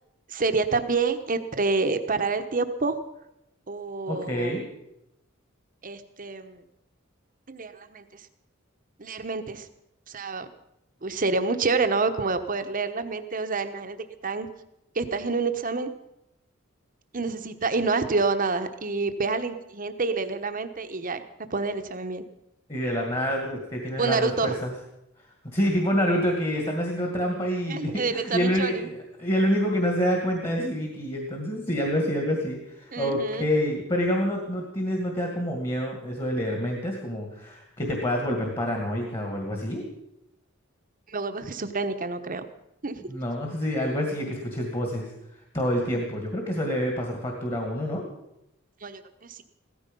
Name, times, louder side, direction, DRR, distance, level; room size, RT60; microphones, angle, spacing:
voice 1, 0.3-3.0 3.7-4.5 5.8-6.6 7.5-8.0 9.0-9.6 10.1-10.5 11.0-14.5 14.9-15.9 17.1-21.2 21.5-22.2 24.0-24.5 27.7-28.9 32.9-33.4 41.1-42.4 42.8-43.0 48.8-49.4, right 4 dB, 40° right, 8 dB, 1.1 m, -28 dB
voice 2, 4.1-4.6 22.7-24.7 25.5-39.9 43.1-45.1 45.5-48.0, equal, 25° left, 2 dB, 2.1 m, -27 dB
16.5 x 14.5 x 5.4 m, 0.85 s
head